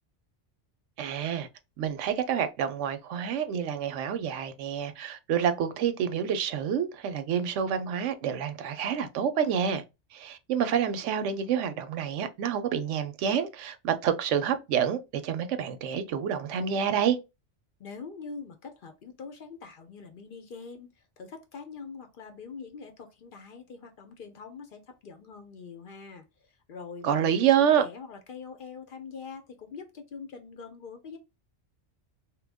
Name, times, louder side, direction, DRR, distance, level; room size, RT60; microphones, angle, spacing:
voice 1, 1.0-1.5 1.8-9.8 10.1-17.2 27.0-27.9, right 8 dB, 90° right, 0.9 m, -28 dB
voice 2, 17.8-31.2, left 5 dB, 55° left, 0.7 m, -44 dB
3.1 x 2.2 x 3.4 m
omnidirectional pair, 1.2 m